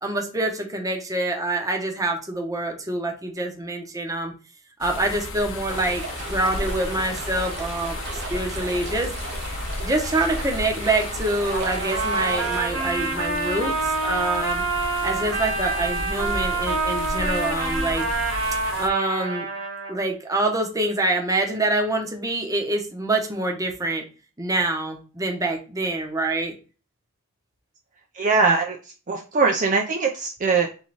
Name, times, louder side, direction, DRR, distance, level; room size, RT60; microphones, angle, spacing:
voice 1, 0.0-4.3 4.8-9.1 9.8-14.6 15.0-18.1 18.8-19.5 19.9-24.0 24.4-26.5, right 2 dB, 15° right, 3 dB, 0.8 m, -26 dB
sound 1, 4.8-18.9, left 2 dB, 60° left, 0.7 m, -33 dB
sound 2, 5.7-12.6, right 3 dB, 55° right, 1.1 m, -36 dB
Trumpet, 11.5-19.9, right 3 dB, 70° right, 1.7 m, -27 dB
voice 2, 28.1-28.8 29.1-30.7, right 4 dB, 40° right, 2 dB, 0.5 m, -21 dB
3.7 x 3.3 x 3.9 m, 0.34 s
head